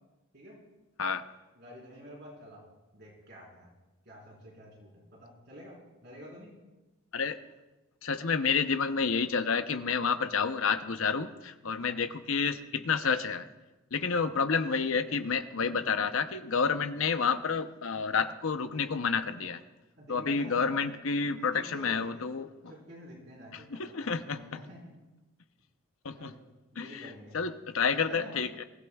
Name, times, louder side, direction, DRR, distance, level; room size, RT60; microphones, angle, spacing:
voice 1, 1.6-2.6 2.9-3.7 4.0-6.6 11.8-12.0 14.0-14.3 20.0-20.8 21.5-22.2 22.7-24.9 26.1-26.4 26.7-27.4 28.0-28.4, equal, 50° right, -4 dB, 4.3 m, -49 dB
voice 2, 8.0-13.5 13.9-19.6 20.1-22.5 23.5-24.6 26.0-26.3 26.8-28.6, left 5 dB, 75° left, 9 dB, 0.8 m, -30 dB
22.0 x 16.0 x 2.3 m, 1.1 s
head